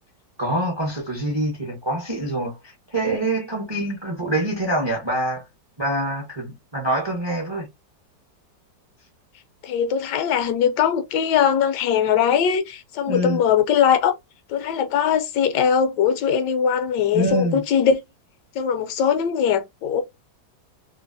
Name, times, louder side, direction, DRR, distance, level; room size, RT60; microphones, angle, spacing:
voice 1, 0.4-5.4 5.8-7.7 13.1-13.4 17.1-17.6, right 1 dB, 30° right, 0.4 m, -25 dB
voice 2, 9.6-14.1 14.5-18.0 18.6-20.0, left 8 dB, 75° left, 1.1 m, -21 dB
3.1 x 2.4 x 2.5 m
omnidirectional pair, 1.9 m